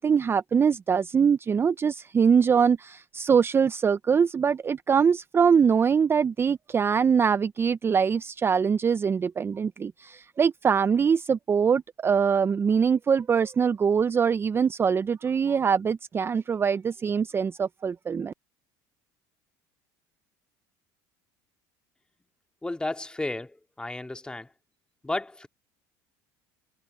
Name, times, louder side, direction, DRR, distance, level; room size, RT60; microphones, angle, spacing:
voice 1, 0.0-18.3, right 6 dB, 25° right, 0.5 m, -23 dB
voice 2, 22.6-24.5 25.0-25.5, left 2 dB, 10° left, 2.1 m, -33 dB
supercardioid pair, 95°, 9 cm